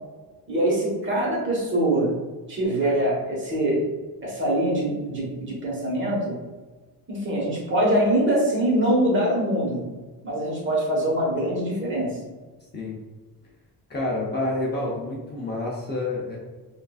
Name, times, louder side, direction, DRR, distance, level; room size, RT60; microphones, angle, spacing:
voice 1, 0.5-2.1 2.5-3.8 4.2-6.4 7.1-9.8 10.2-12.1, right 1 dB, 30° right, -4 dB, 1.2 m, -23 dB
voice 2, 13.9-16.4, left 2 dB, 25° left, -4 dB, 0.7 m, -28 dB
6.5 x 2.6 x 2.3 m, 1.3 s
cardioid pair, 165°, 39 cm